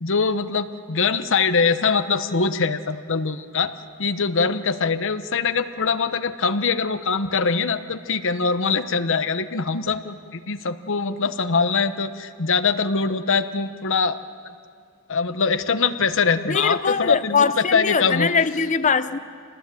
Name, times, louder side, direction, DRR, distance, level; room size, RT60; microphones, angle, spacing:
voice 1, 0.0-14.2 15.1-18.3, left 5 dB, 60° left, 1.0 m, -23 dB
voice 2, 16.5-19.2, left 5 dB, 35° left, 0.8 m, -22 dB
28.0 x 20.0 x 7.7 m
head